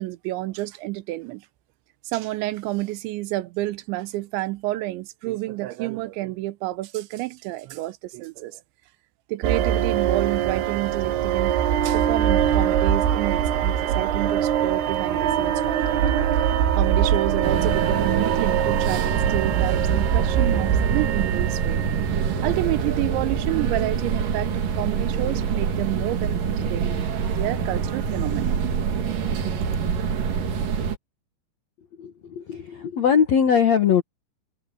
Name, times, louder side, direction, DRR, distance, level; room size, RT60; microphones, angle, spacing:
voice 1, 0.0-1.5 2.1-8.6 9.3-11.6 11.8-16.0 16.4-21.8 22.4-27.0 27.4-28.6, right 18 dB, 90° right, 3.1 m, -29 dB
sound 1, 9.4-24.7, right 9 dB, 70° right, 3.0 m, -23 dB
sound 2, 17.4-31.0, right 6 dB, 55° right, 3.4 m, -25 dB
voice 2, 32.0-34.0, left 7 dB, 75° left, 1.6 m, -20 dB
omnidirectional pair, 5.3 m